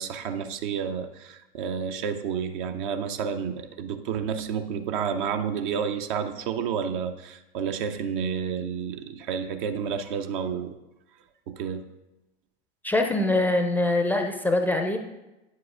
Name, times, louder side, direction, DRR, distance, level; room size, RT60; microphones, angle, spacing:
voice 1, 0.0-10.7 11.5-11.8, right 7 dB, 55° right, 8 dB, 0.7 m, -30 dB
voice 2, 12.8-15.0, left 2 dB, 5° left, 4 dB, 0.5 m, -23 dB
9.3 x 7.5 x 2.4 m, 0.98 s
figure-of-eight pair, 85°, 31 cm